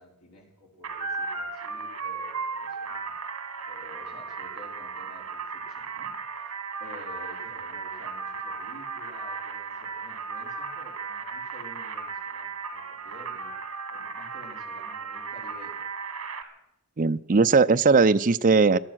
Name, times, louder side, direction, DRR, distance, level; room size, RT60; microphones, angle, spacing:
voice 1, 0.0-3.1 3.6-6.5 6.8-13.6 13.9-15.9, left 1 dB, 80° left, 0 dB, 4.5 m, -50 dB
sound 1, 0.8-16.4, right 5 dB, 65° right, 2.1 m, -36 dB
voice 2, 17.0-18.8, right 4 dB, 35° right, 12 dB, 0.5 m, -19 dB
18.0 x 12.5 x 6.3 m, 0.85 s
head